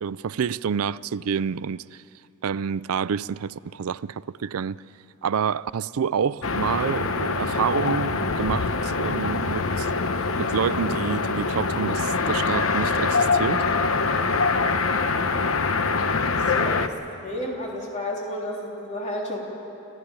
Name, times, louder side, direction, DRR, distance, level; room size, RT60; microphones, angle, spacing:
voice 1, 0.0-2.0 2.4-4.8 5.2-9.9 10.4-13.6, right 7 dB, 85° right, 0.4 m, -28 dB
sound 1, 6.4-16.9, left 4 dB, 75° left, 1.0 m, -24 dB
voice 2, 16.2-19.4, left 1 dB, 35° left, 3.5 m, -32 dB
29.5 x 15.5 x 8.8 m
head